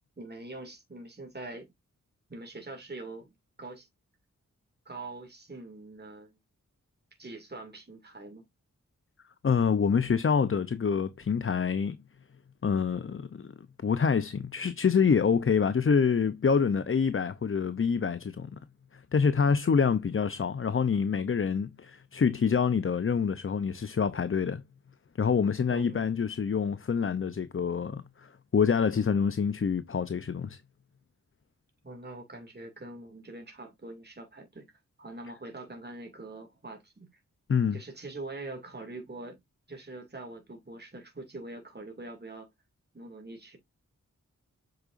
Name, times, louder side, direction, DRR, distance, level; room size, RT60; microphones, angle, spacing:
voice 1, 0.2-1.7 2.3-3.3 3.6-3.9 4.9-6.4 7.2-8.4 25.7-26.0 31.8-34.7 35.0-37.1 37.7-39.4 39.7-42.5 42.9-43.6, right 2 dB, 35° right, 2.3 m, -43 dB
voice 2, 9.4-12.0 12.6-13.5 13.8-18.6 18.9-24.6 25.2-30.6 37.5-37.8, left 6 dB, 40° left, 0.6 m, -26 dB
7.8 x 4.9 x 2.5 m
cardioid pair, 55°, 31 cm